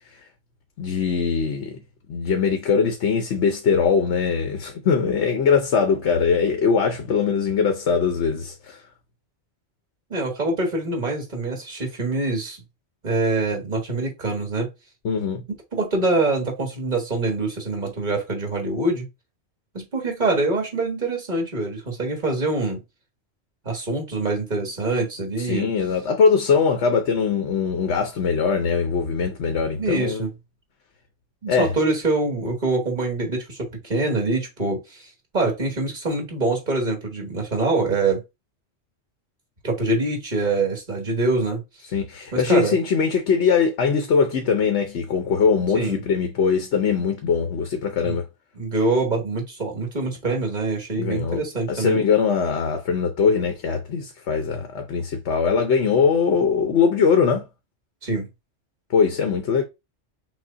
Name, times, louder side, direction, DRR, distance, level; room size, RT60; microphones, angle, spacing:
voice 1, 0.8-1.8 2.1-8.8 15.0-15.4 25.4-30.2 31.5-31.7 41.9-48.3 50.9-51.4 51.7-57.5 58.9-59.6, left 6 dB, 85° left, 1.1 m, -21 dB
voice 2, 10.1-12.6 13.0-14.7 15.7-19.1 19.7-22.8 23.6-25.7 29.8-30.3 31.4-38.2 39.6-41.6 42.3-42.8 45.7-46.0 48.0-48.2 48.6-52.0 58.0-58.3, right 2 dB, 45° right, 1.8 m, -24 dB
6.1 x 2.2 x 3.9 m
omnidirectional pair, 1.1 m